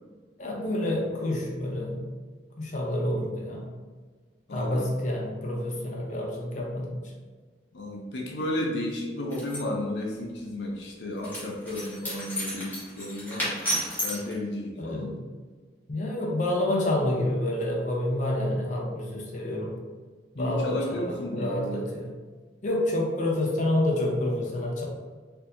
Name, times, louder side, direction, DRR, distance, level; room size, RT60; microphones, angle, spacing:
voice 1, 0.4-2.1 2.6-3.7 4.5-7.0 14.8-15.2 15.9-19.7 20.3-22.1 22.6-24.8, left 1 dB, 45° left, -2 dB, 0.7 m, -28 dB
voice 2, 4.5-4.9 7.7-13.6 14.0-15.1 19.5-19.6 20.4-21.8, left 1 dB, 80° left, -1 dB, 0.6 m, -33 dB
sound 1, 9.3-9.6 11.2-14.3, equal, 10° left, 1.3 m, -32 dB
4.4 x 2.7 x 2.6 m, 1.4 s
head